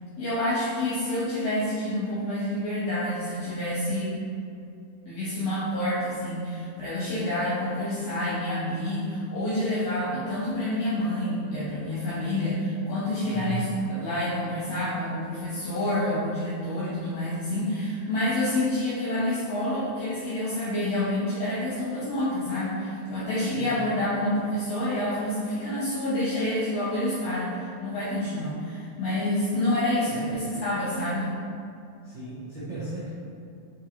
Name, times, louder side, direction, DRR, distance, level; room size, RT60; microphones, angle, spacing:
voice 1, 0.2-4.2 5.1-31.3, left 1 dB, 70° left, -9 dB, 1.7 m, -28 dB
voice 2, 13.2-13.7 23.5-23.8 30.1-30.3 32.0-33.1, right 3 dB, 85° right, -11 dB, 1.0 m, -35 dB
4.4 x 3.8 x 2.9 m, 2.5 s
omnidirectional pair, 3.4 m